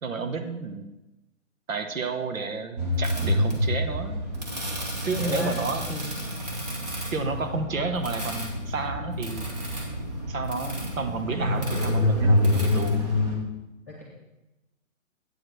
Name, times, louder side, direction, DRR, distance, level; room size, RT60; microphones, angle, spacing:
voice 1, 0.0-0.9 1.7-4.2 5.1-6.2 7.1-9.6 10.3-13.0, right 4 dB, 75° right, 7 dB, 1.2 m, -31 dB
sound 1, 2.8-13.4, left 1 dB, 30° right, 1.3 m, -27 dB
voice 2, 5.2-5.5 7.4-7.5 13.9-14.0, left 3 dB, 10° left, -6 dB, 0.6 m, -34 dB
8.5 x 5.0 x 6.1 m, 0.98 s
hypercardioid pair, 175°, 41 cm